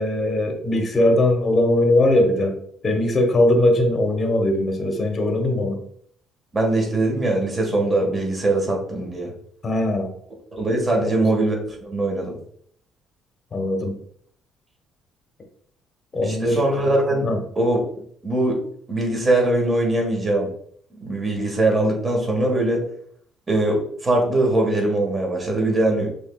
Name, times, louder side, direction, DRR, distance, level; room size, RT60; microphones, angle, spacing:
voice 1, 0.0-2.6 2.8-5.8 9.6-10.1 11.0-11.3 13.5-14.0 16.1-16.6 17.2-17.4, left 1 dB, 30° left, 3 dB, 1.0 m, -20 dB
voice 2, 6.5-9.3 10.5-12.4 16.2-17.3 17.5-17.8 18.2-18.6 18.9-20.5 20.9-22.8 23.5-26.1, right 2 dB, 25° right, 1 dB, 1.5 m, -21 dB
6.2 x 3.3 x 2.3 m, 0.63 s
cardioid pair, 115°, 0 cm